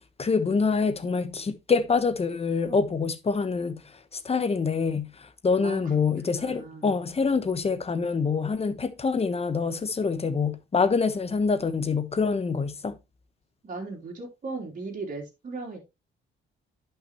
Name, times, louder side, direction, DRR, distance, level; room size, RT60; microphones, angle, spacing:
voice 1, 0.2-12.9, left 5 dB, 30° left, 1.1 m, -26 dB
voice 2, 5.6-7.0 13.6-15.8, right 3 dB, 40° right, 3.6 m, -37 dB
10.5 x 5.9 x 3.1 m
cardioid pair, 90°, 20 cm